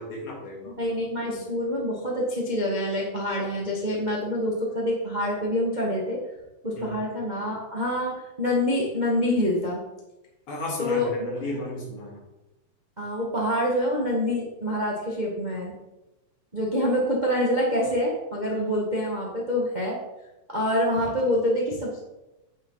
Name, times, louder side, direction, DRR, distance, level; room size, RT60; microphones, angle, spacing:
voice 1, 0.0-0.7 6.8-6.9 10.5-12.2, left 1 dB, 40° left, -4 dB, 3.7 m, -34 dB
voice 2, 0.6-6.2 6.6-9.8 10.8-11.3 13.0-15.7 16.5-20.0 20.5-22.0, left 1 dB, 25° right, -3 dB, 0.9 m, -26 dB
9.2 x 8.3 x 4.0 m, 0.98 s
omnidirectional pair, 3.9 m